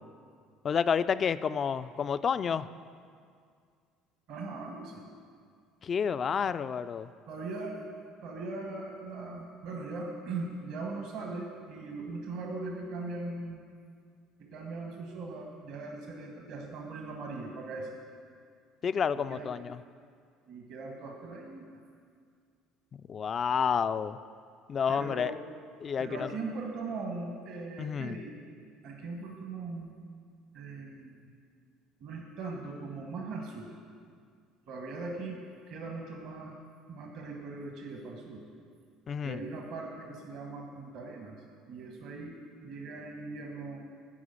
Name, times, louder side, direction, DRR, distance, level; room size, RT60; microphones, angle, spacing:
voice 1, 0.6-2.7 5.8-7.1 18.8-19.8 22.9-24.2 24.7-25.3 25.8-26.3 27.8-28.2 39.1-39.4, left 7 dB, 40° left, 14 dB, 0.3 m, -30 dB
voice 2, 4.3-5.0 7.3-7.8 8.2-13.6 14.5-17.9 19.3-19.5 20.5-21.7 24.9-25.4 26.0-28.3 28.8-30.0 30.5-31.3 32.0-33.7 34.7-35.4 35.7-36.6 36.9-38.5 39.2-42.4 42.6-43.8, right 3 dB, 60° right, 1 dB, 1.3 m, -40 dB
10.0 x 4.9 x 8.0 m, 2.2 s
hypercardioid pair, 65°, 0 cm